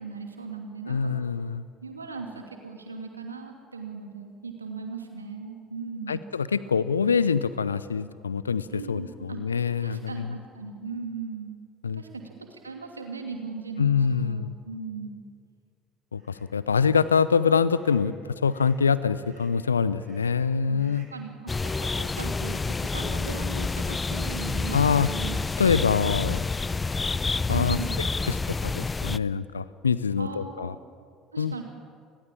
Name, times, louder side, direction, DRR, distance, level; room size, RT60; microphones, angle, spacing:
voice 1, 0.0-1.3 1.8-6.2 8.7-9.4 9.8-11.5 11.9-12.1 12.4-15.2 20.7-20.8 21.1-25.8 27.5-28.0 30.2-30.7 31.3-31.6, right 4 dB, 85° right, 4 dB, 2.6 m, -38 dB
voice 2, 0.9-1.6 6.1-10.4 11.8-12.0 13.8-14.6 16.1-21.1 24.7-25.1 25.6-26.4 27.5-27.8 28.3-28.4 28.6-30.7 31.4-31.5, left 6 dB, 80° left, 17 dB, 0.6 m, -25 dB
sound 1, 16.2-16.4 16.9-17.3 17.7-18.1 18.4-18.8 19.2-19.6 20.0-20.4 20.8-21.2 21.5-21.9, right 5 dB, 40° right, 7.8 m, -59 dB
sound 2, 21.5-29.2, left 3 dB, 20° left, 0.6 m, -28 dB
29.0 x 20.5 x 8.7 m, 2.1 s
figure-of-eight pair, 60°, 0 cm